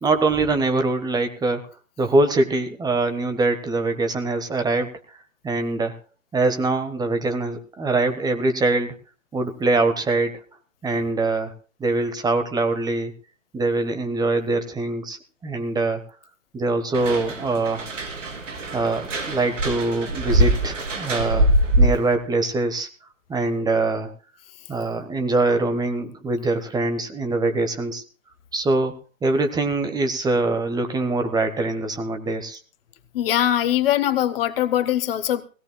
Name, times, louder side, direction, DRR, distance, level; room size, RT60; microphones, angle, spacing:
voice 1, 0.0-1.6 2.0-5.2 5.4-6.0 6.3-8.9 9.3-10.3 10.8-11.5 11.8-13.1 13.5-16.0 16.5-17.9 18.7-22.9 23.3-24.1 24.7-28.0 28.5-28.9 29.2-32.6, right 2 dB, 10° right, 7 dB, 1.4 m, -23 dB
sound 1, 16.9-22.1, right 1 dB, 70° right, 3.2 m, -23 dB
voice 2, 33.1-35.4, left 12 dB, 45° left, 13 dB, 1.4 m, -21 dB
21.0 x 17.0 x 2.3 m, 0.35 s
figure-of-eight pair, 120°, 39 cm